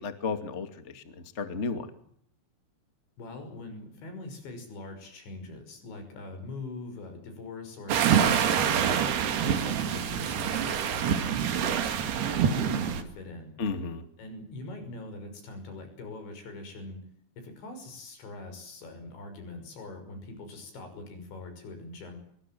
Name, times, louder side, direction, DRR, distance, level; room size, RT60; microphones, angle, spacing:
voice 1, 0.0-1.9 13.6-14.0, left 4 dB, 25° left, 8 dB, 1.7 m, -33 dB
voice 2, 3.2-9.0 9.5-11.2 11.5-13.5 14.2-17.0 17.4-22.2, left 2 dB, 80° left, 7 dB, 8.2 m, -42 dB
sound 1, 7.9-13.0, right 8 dB, 65° right, 4.2 m, -26 dB
26.5 x 23.5 x 7.8 m, 0.66 s
omnidirectional pair, 5.1 m